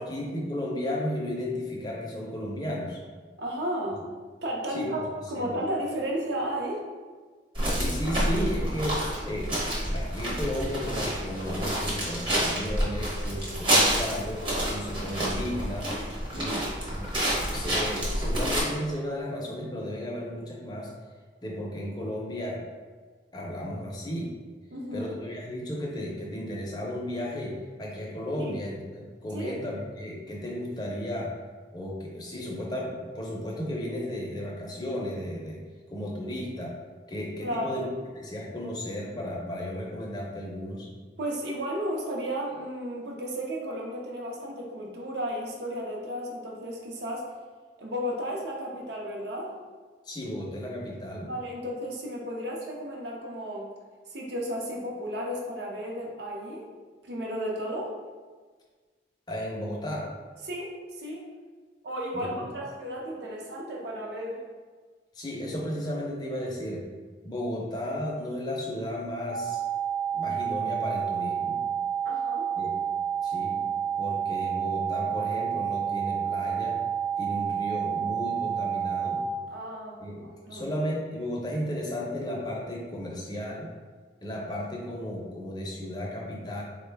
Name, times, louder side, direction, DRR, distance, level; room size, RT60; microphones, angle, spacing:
voice 1, 0.0-3.0 4.7-5.5 7.6-9.5 9.9-15.9 16.4-17.1 17.5-20.9 21.4-22.6 23.3-24.3 24.9-31.3 31.7-35.6 35.9-36.7 37.1-37.9 38.1-40.9 50.0-51.3 59.3-60.1 62.1-62.5 65.1-66.8 67.2-69.6 70.1-71.6 72.6-72.7 73.2-73.6 74.0-76.8 77.2-79.2 80.0-80.2 80.5-83.7 84.2-86.6, left 1 dB, 20° left, -2 dB, 0.5 m, -34 dB
voice 2, 3.4-4.0 4.4-5.0 5.3-6.8 16.3-16.6 24.7-25.1 28.4-28.5 29.3-29.6 37.4-37.8 41.2-47.3 47.8-49.6 51.3-53.7 54.1-56.7 57.0-57.9 60.4-61.3 61.8-64.4 72.0-72.5 79.5-80.7, equal, 60° right, -1 dB, 0.6 m, -33 dB
sound 1, 7.6-18.6, right 1 dB, 25° right, 0.7 m, -28 dB
sound 2, 69.3-79.3, right 8 dB, 85° left, 0.5 m, -29 dB
3.8 x 2.2 x 3.3 m, 1.5 s
head